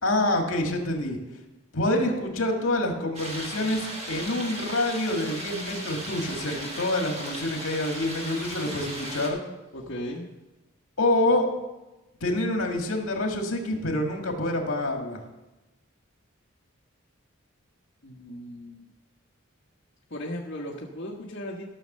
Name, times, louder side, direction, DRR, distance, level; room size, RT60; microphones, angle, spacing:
voice 1, 0.0-1.2 1.7-9.4 11.0-11.4 12.2-15.2, left 1 dB, 75° left, 3 dB, 1.9 m, -27 dB
sound 1, 3.1-9.3, right 1 dB, 30° right, 1.9 m, -37 dB
voice 2, 9.7-10.3 18.0-18.8 20.1-21.6, left 1 dB, 60° left, -4 dB, 1.3 m, -36 dB
13.5 x 6.4 x 6.7 m, 1.0 s
head